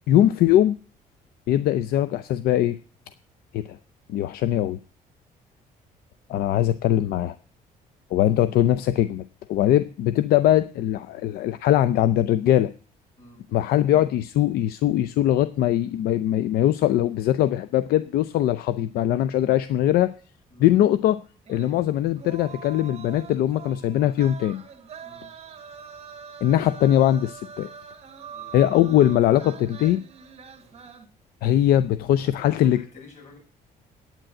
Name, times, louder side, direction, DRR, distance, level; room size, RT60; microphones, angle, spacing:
voice 1, 0.1-0.8 1.5-2.8 3.5-3.8 4.1-4.8 6.3-7.3 8.1-9.2 9.5-12.7 13.5-20.1 20.6-21.2 21.5-24.6 26.4-27.7 28.5-30.0 31.4-32.8, left 12 dB, 80° left, 13 dB, 0.6 m, -21 dB
sound 1, 21.4-31.1, right 7 dB, 45° right, 1.6 m, -43 dB
voice 2, 25.0-25.3 28.3-28.6 30.6-30.8 32.1-33.4, left 3 dB, 50° left, 0 dB, 7.1 m, -48 dB
9.1 x 9.0 x 7.6 m, 0.38 s
cardioid pair, 120°, 16 cm